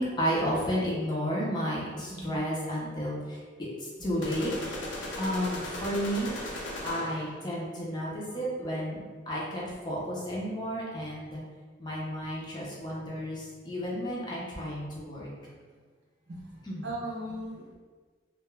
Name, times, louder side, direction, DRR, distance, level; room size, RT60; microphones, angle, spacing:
voice 1, 0.0-4.5 5.2-11.4 11.8-15.3 16.6-16.9, equal, 25° left, -5 dB, 0.5 m, -32 dB
voice 2, 2.0-2.3 15.4-15.5 16.3-16.5 16.8-17.7, right 1 dB, 70° right, -3 dB, 0.6 m, -38 dB
sound 1, 4.2-7.4, left 1 dB, 80° left, 0.5 m, -37 dB
2.3 x 2.1 x 3.0 m, 1.5 s
head